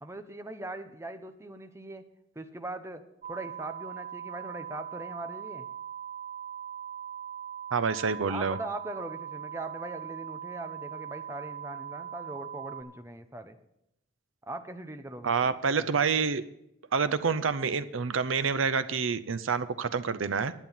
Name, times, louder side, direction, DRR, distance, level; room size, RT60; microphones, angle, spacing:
voice 1, 0.0-2.0 2.4-5.7 8.3-13.6 14.4-16.0, right 2 dB, 15° right, 8 dB, 0.7 m, -41 dB
sound 1, 3.2-12.8, right 9 dB, 35° right, 1.1 m, -40 dB
voice 2, 7.7-8.6 15.2-16.4 16.9-20.5, right 5 dB, 85° right, 15 dB, 0.6 m, -27 dB
10.5 x 9.0 x 5.7 m, 0.82 s
head